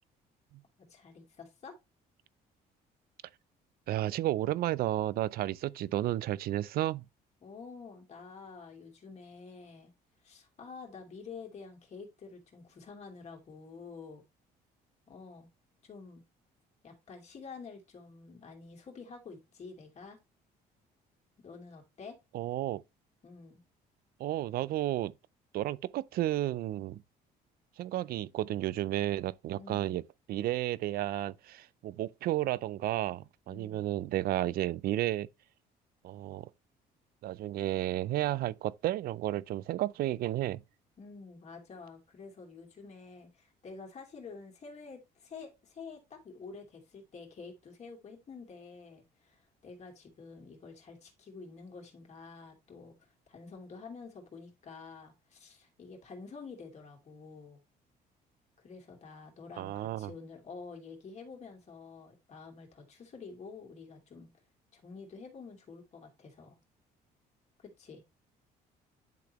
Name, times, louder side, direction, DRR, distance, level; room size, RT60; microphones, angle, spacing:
voice 1, 0.8-1.8 7.4-9.9 10.2-14.2 15.1-15.5 15.8-16.2 16.8-20.2 21.4-22.2 23.2-23.6 29.5-30.0 33.5-33.9 41.0-52.9 53.3-57.6 58.6-64.3 64.7-66.6 67.6-68.0, left 4 dB, 40° left, 2.6 m, -49 dB
voice 2, 3.9-7.0 22.3-22.8 24.2-25.1 25.5-27.0 27.8-30.0 30.3-35.3 36.0-36.5 37.2-40.6 59.6-60.1, right 14 dB, 65° right, 0.4 m, -32 dB
10.5 x 4.0 x 3.0 m
cardioid pair, 110°, 17 cm